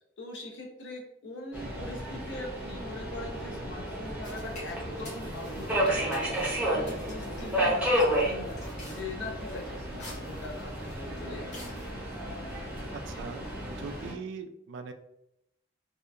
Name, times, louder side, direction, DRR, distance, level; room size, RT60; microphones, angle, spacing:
voice 1, 0.2-11.5, left 2 dB, 70° left, 0 dB, 0.6 m, -42 dB
Subway metro underground, 1.5-14.1, equal, 5° right, 0.6 m, -32 dB
sound 1, 4.2-11.9, left 2 dB, 40° left, 0.7 m, -49 dB
voice 2, 12.9-14.9, right 4 dB, 75° right, 7 dB, 0.3 m, -41 dB
2.7 x 2.2 x 2.3 m, 0.82 s
head